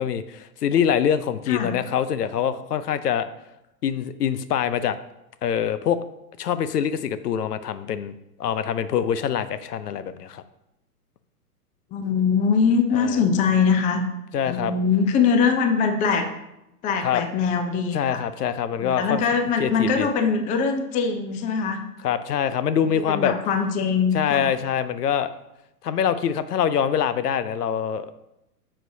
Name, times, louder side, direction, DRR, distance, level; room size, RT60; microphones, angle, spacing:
voice 1, 0.0-3.3 3.8-5.0 5.4-6.0 6.4-8.1 8.4-10.4 12.9-13.2 14.3-14.7 17.0-17.2 17.9-19.2 19.6-20.1 22.0-23.3 24.1-25.3 25.8-28.1, left 8 dB, 80° left, 13 dB, 0.7 m, -24 dB
voice 2, 11.9-14.0 14.4-16.3 16.8-18.2 18.8-21.8 23.1-24.5, left 5 dB, 15° left, 6 dB, 0.6 m, -22 dB
9.9 x 6.5 x 2.7 m, 0.89 s
hypercardioid pair, 125°, 46 cm